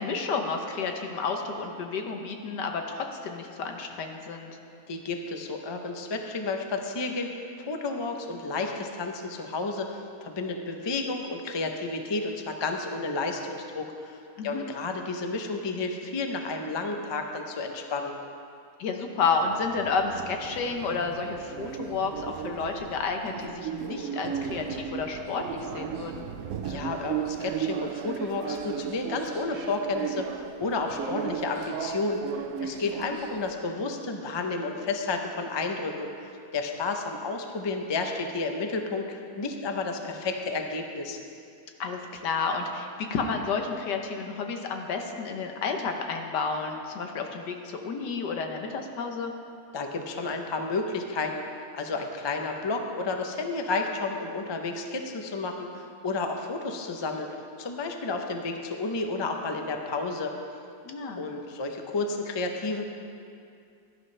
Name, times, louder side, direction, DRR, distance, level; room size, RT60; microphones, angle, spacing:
voice 1, 0.0-4.5 14.4-14.6 18.8-26.2 33.1-33.2 41.8-49.3 60.8-61.2, left 4 dB, 85° left, 4 dB, 1.6 m, -31 dB
voice 2, 4.9-18.1 26.6-41.2 49.7-51.4 51.7-60.3 61.2-62.8, left 3 dB, 30° left, 4 dB, 0.4 m, -31 dB
sound 1, 19.4-33.5, right 8 dB, 65° right, 0.8 m, -35 dB
17.0 x 11.5 x 3.3 m, 2.5 s
omnidirectional pair, 1.8 m